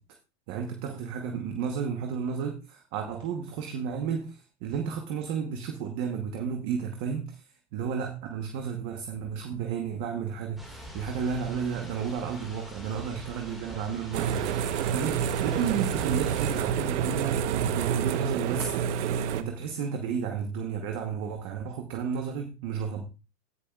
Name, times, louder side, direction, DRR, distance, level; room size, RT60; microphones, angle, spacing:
voice 1, 0.5-23.0, right 7 dB, 35° right, 1.1 m, -33 dB
sound 1, 10.6-16.6, left 1 dB, ahead, 1.9 m, -44 dB
sound 2, 14.1-19.4, right 8 dB, 70° right, 1.0 m, -28 dB
16.0 x 6.9 x 2.3 m
supercardioid pair, 175°, 37 cm